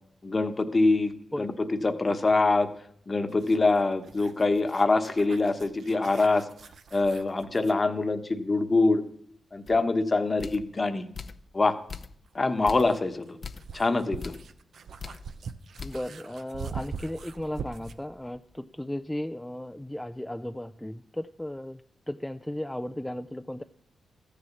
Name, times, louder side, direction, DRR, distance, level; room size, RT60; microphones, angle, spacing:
voice 1, 0.2-2.7 3.1-6.5 6.9-9.0 9.5-11.1 11.5-11.8 12.3-13.4 13.7-14.3, left 3 dB, 35° left, 9 dB, 1.1 m, -24 dB
voice 2, 1.3-1.7 15.8-21.8 22.1-23.6, left 1 dB, 10° left, 8 dB, 0.4 m, -35 dB
sound 1, 3.3-7.8 10.2-10.3 12.3-18.1, right 6 dB, 75° right, 0.7 m, -43 dB
sound 2, 9.7-9.8 10.4-10.7 11.1-11.5 11.9-12.3 12.7-13.0 13.4-13.7 14.2-14.5 15.0-15.3 15.8-16.1 16.5-16.6 17.1-18.6, left 5 dB, 55° left, 0.6 m, -42 dB
14.0 x 6.9 x 7.2 m, 0.66 s
cardioid pair, 60°, 0 cm